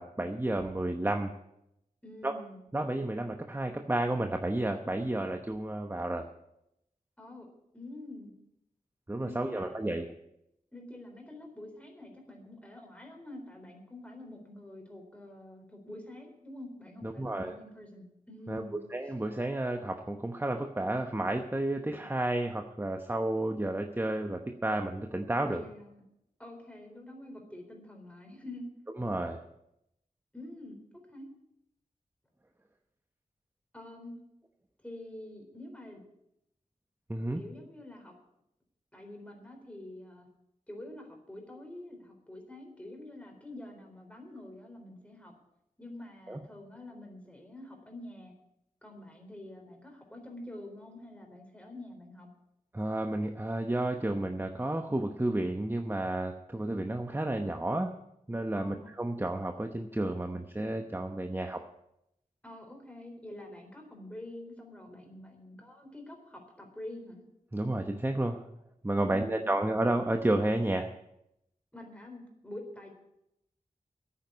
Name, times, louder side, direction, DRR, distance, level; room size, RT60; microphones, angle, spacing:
voice 1, 0.0-1.3 2.2-2.3 2.7-6.3 9.1-10.1 17.0-17.5 18.5-25.6 29.0-29.4 37.1-37.4 46.3-46.4 52.7-58.0 58.3-61.6 67.5-68.4 68.8-70.9, right 1 dB, 15° right, 5 dB, 1.0 m, -31 dB
voice 2, 2.0-2.6 7.2-7.5 7.7-8.4 9.2-9.8 10.7-19.1 25.5-26.0 26.4-28.7 30.3-31.3 33.7-34.2 34.8-36.0 37.4-38.1 38.9-40.3 40.7-45.3 45.8-48.3 48.8-52.3 58.5-58.9 62.4-67.2 69.0-69.8 71.7-72.9, left 1 dB, 10° left, 2 dB, 4.1 m, -47 dB
10.5 x 9.3 x 9.9 m, 0.82 s
wide cardioid pair, 80°, 14 cm